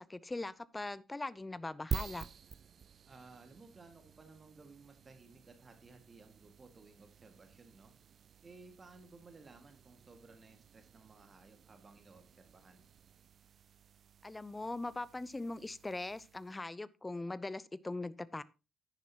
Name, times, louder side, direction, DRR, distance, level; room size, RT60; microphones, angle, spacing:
voice 1, 0.0-2.3 14.2-18.4, left 2 dB, 20° left, 0.6 m, -41 dB
sound 1, 1.9-16.6, right 7 dB, 45° right, 0.4 m, -49 dB
voice 2, 3.1-7.9 8.4-12.8, right 3 dB, 30° right, 2.0 m, -58 dB
10.5 x 9.9 x 3.0 m
figure-of-eight pair, 45°, 0 cm